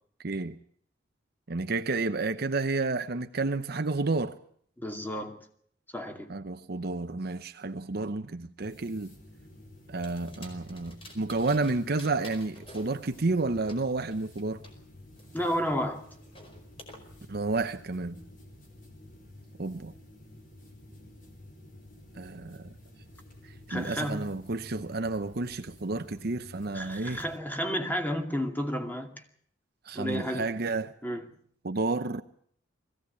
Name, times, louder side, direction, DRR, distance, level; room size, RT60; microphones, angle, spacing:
voice 1, 0.2-0.6 1.5-4.3 6.3-9.1 9.9-14.6 17.3-18.2 19.6-19.9 22.1-22.7 23.7-27.2 29.9-30.9 31.6-32.2, right 3 dB, 55° right, 0.8 m, -31 dB
voice 2, 4.8-5.4 5.9-6.3 15.3-16.0 23.7-24.2 26.7-29.2 30.0-30.5 31.0-31.3, equal, 10° left, 2.4 m, -32 dB
sound 1, 8.6-27.4, left 1 dB, 50° left, 5.1 m, -51 dB
sound 2, 10.0-11.7 12.0-14.7 15.2-17.0, left 1 dB, 30° left, 4.8 m, -51 dB
21.0 x 16.0 x 8.4 m
head